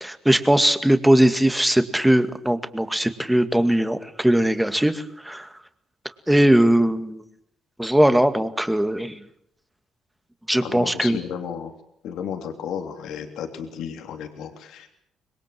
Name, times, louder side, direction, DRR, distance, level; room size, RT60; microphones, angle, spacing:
voice 1, 0.0-5.5 6.3-7.2 7.8-9.2 10.5-11.2, right 1 dB, 5° right, 10 dB, 2.2 m, -20 dB
voice 2, 10.6-11.7 12.0-14.9, left 8 dB, 85° left, 5 dB, 3.2 m, -33 dB
26.0 x 21.5 x 7.8 m, 0.72 s
cardioid pair, 90°, 0 cm